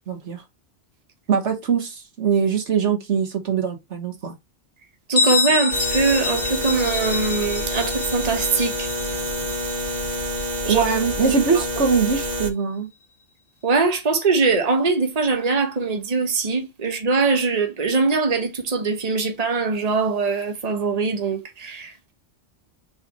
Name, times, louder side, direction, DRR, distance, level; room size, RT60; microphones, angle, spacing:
voice 1, 0.1-0.4 1.3-4.3 10.7-12.9, right 6 dB, 75° right, 1.6 m, -22 dB
voice 2, 5.1-8.9 10.6-10.8 11.5-11.6 13.6-22.1, right 4 dB, 35° right, 1.2 m, -22 dB
Bell, 5.2-10.7, left 4 dB, 50° left, 1.2 m, -27 dB
sound 1, 5.7-12.5, equal, 55° right, 1.3 m, -27 dB
5.7 x 4.1 x 4.2 m
omnidirectional pair, 1.2 m